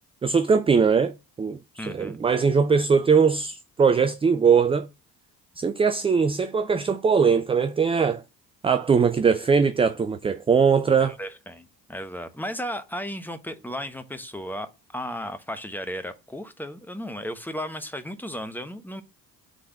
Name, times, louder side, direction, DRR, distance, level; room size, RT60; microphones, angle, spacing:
voice 1, 0.2-4.9 5.6-8.2 8.6-11.2, right 5 dB, 10° right, 0.4 m, -21 dB
voice 2, 1.8-2.2 11.0-19.0, equal, 5° left, 1.1 m, -35 dB
6.5 x 3.9 x 5.9 m
figure-of-eight pair, 50°, 50 cm